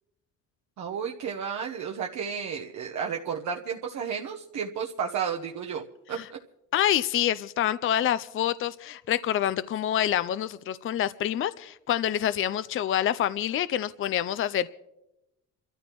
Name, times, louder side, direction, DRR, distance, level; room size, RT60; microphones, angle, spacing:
voice 1, 0.8-6.4, right 7 dB, 70° right, 0 dB, 1.1 m, -32 dB
voice 2, 6.7-14.7, left 11 dB, 45° left, 15 dB, 0.4 m, -27 dB
29.5 x 13.5 x 3.0 m, 0.94 s
cardioid pair, 90°, 30 cm